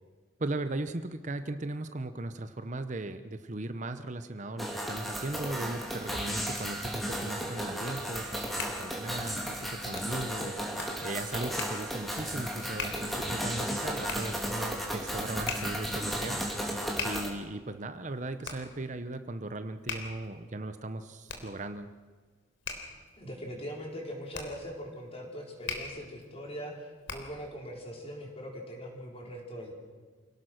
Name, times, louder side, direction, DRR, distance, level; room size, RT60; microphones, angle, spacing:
voice 1, 0.4-21.9, right 2 dB, 40° right, 10 dB, 0.9 m, -38 dB
sound 1, 4.6-17.3, equal, ahead, 2.9 m, -34 dB
Hands, 8.2-27.5, left 4 dB, 70° left, 3.6 m, -43 dB
voice 2, 23.1-29.7, equal, 30° left, 0 dB, 4.8 m, -41 dB
28.0 x 18.0 x 6.4 m, 1.4 s
head